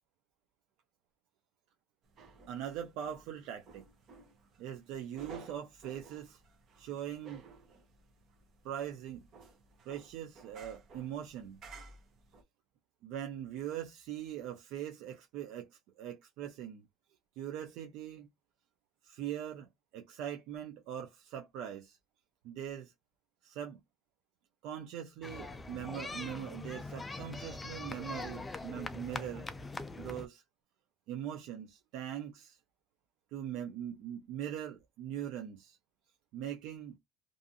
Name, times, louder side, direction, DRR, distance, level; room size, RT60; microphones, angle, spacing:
sound 1, 2.1-12.4, right 4 dB, 45° right, 0.8 m, -55 dB
voice 1, 2.5-3.8 4.6-6.4 6.8-7.5 8.6-9.3 9.9-11.6 13.0-16.9 17.4-18.3 19.0-22.0 22.4-22.9 23.4-23.8 24.6-29.4 30.0-30.4 31.1-32.6 33.3-35.8 36.3-37.0, right 10 dB, 70° right, 0.5 m, -41 dB
sound 2, 25.2-30.3, left 3 dB, 15° left, 0.3 m, -42 dB
2.6 x 2.4 x 2.6 m
cardioid pair, 150°, 0 cm